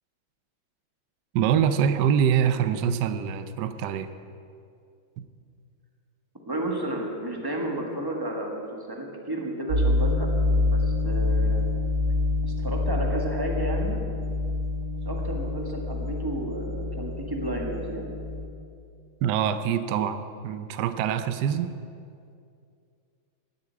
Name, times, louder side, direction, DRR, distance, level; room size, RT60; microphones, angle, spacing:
voice 1, 1.3-4.1 5.2-5.3 19.2-21.7, right 8 dB, 70° right, 11 dB, 1.1 m, -24 dB
voice 2, 6.4-10.3 10.6-11.6 12.4-14.0 15.0-18.1, right 1 dB, 15° right, 0 dB, 1.3 m, -32 dB
sound 1, 9.7-18.4, left 2 dB, 45° right, 2.1 m, -26 dB
10.5 x 8.4 x 8.7 m, 2.4 s
omnidirectional pair, 2.3 m